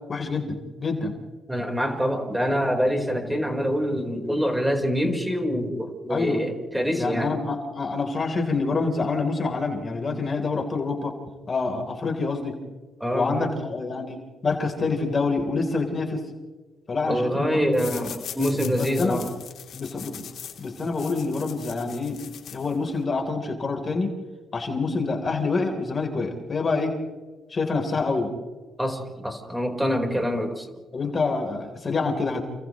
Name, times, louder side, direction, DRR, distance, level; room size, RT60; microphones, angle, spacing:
voice 1, 0.1-1.2 6.1-6.4 7.0-11.1 11.5-12.6 13.1-16.2 16.9-17.8 18.7-19.2 19.7-20.2 20.6-22.2 22.5-24.1 24.5-26.9 27.5-28.3 30.9-32.4, left 3 dB, 35° left, 3 dB, 3.8 m, -26 dB
voice 2, 1.5-7.3 13.0-13.5 17.1-19.3 28.8-30.7, equal, 5° right, 3 dB, 4.5 m, -25 dB
sound 1, 17.7-23.0, left 8 dB, 70° left, 3.3 m, -41 dB
29.5 x 29.0 x 3.2 m, 1.3 s
cardioid pair, 90°, 0 cm